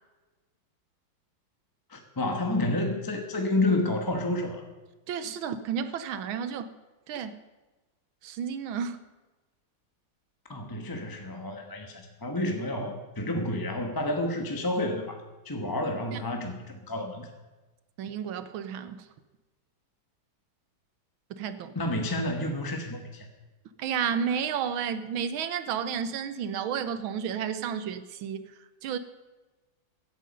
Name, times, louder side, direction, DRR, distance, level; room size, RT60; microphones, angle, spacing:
voice 1, 1.9-4.6 10.5-15.2 15.4-17.3 21.7-23.3, left 1 dB, 15° left, 4 dB, 1.0 m, -30 dB
voice 2, 5.1-6.7 7.1-7.4 8.2-9.0 16.1-16.2 18.0-19.0 21.3-21.7 23.8-28.5 28.8-29.0, right 7 dB, 85° right, 12 dB, 1.6 m, -32 dB
17.0 x 11.0 x 5.3 m, 1.2 s
omnidirectional pair, 2.2 m